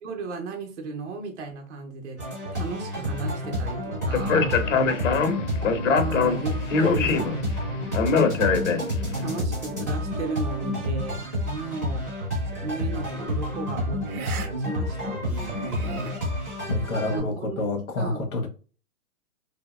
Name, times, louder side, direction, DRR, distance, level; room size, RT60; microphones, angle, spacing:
voice 1, 0.0-4.6 6.0-7.3 9.2-12.2 12.6-14.0 14.6-16.2 17.1-17.6 18.0-18.3, right 4 dB, 55° right, 0.7 m, -35 dB
sound 1, 2.2-17.2, left 1 dB, 15° right, 0.5 m, -29 dB
Speech, 4.1-9.2, left 5 dB, 60° left, 0.5 m, -23 dB
sound 2, 12.5-12.7 14.0-14.5 14.8-14.9 15.4-16.1, right 6 dB, 90° right, 0.7 m, -39 dB
voice 2, 16.7-18.5, left 2 dB, 85° left, 1.0 m, -28 dB
2.7 x 2.7 x 2.2 m
hypercardioid pair, 175°, 43 cm